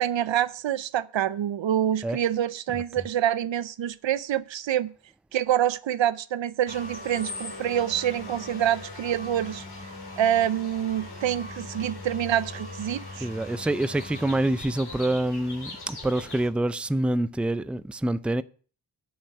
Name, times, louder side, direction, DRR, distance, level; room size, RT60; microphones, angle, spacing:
voice 1, 0.0-4.9 5.3-9.6 10.2-13.3, right 11 dB, 75° right, 0.6 m, -26 dB
voice 2, 2.7-3.1 13.2-18.4, right 1 dB, 5° right, 0.4 m, -27 dB
sound 1, 6.7-16.5, left 2 dB, 60° left, 2.8 m, -40 dB
8.0 x 6.4 x 7.7 m
cardioid pair, 45°, 46 cm